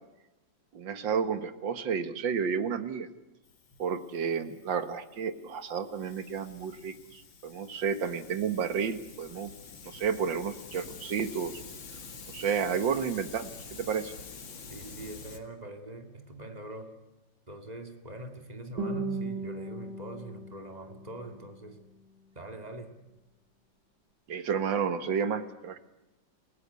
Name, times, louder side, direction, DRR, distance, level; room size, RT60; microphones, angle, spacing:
voice 1, 0.7-3.1 3.8-9.5 9.8-11.5 12.3-14.1 24.3-25.8, right 6 dB, 80° right, 11 dB, 2.1 m, -31 dB
Hiss, 3.4-15.4, left 5 dB, 90° left, 2.8 m, -48 dB
voice 2, 14.7-16.9 17.5-21.8 22.3-23.0, right 2 dB, 20° right, 6 dB, 2.4 m, -43 dB
Guitar, 18.8-21.8, right 2 dB, 60° right, 3.8 m, -37 dB
29.0 x 17.5 x 8.3 m, 0.99 s
omnidirectional pair, 2.0 m